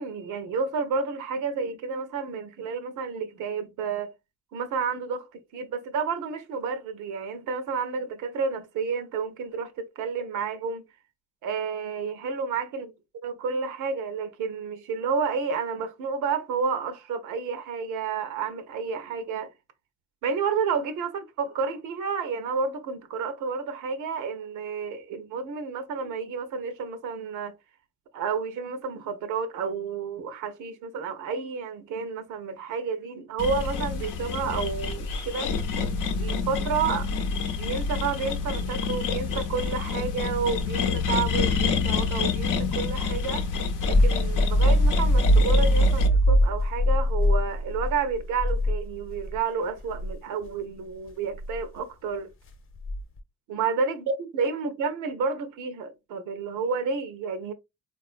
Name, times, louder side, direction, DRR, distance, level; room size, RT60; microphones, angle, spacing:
voice 1, 0.0-4.1 4.5-10.8 11.4-12.9 13.2-19.5 20.2-27.5 28.1-35.5 36.1-43.5 43.9-52.3 53.5-57.5, right 5 dB, 80° right, 0.6 m, -30 dB
sound 1, 33.4-46.1, left 5 dB, 85° left, 0.7 m, -28 dB
sound 2, 43.5-49.4 49.8-50.1 51.3-51.6 52.8-53.2, equal, 45° left, 0.8 m, -22 dB
3.7 x 2.4 x 2.4 m
cardioid pair, 90°, 30 cm